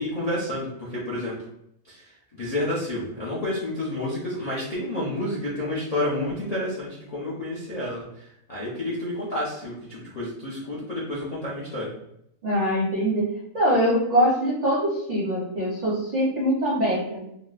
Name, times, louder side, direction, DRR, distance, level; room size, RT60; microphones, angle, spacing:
voice 1, 0.0-1.4 1.9-11.9, left 1 dB, 55° left, -7 dB, 0.4 m, -30 dB
voice 2, 12.4-13.3 13.5-17.2, equal, 45° right, -5 dB, 0.6 m, -23 dB
3.8 x 2.0 x 2.4 m, 0.78 s
omnidirectional pair, 1.6 m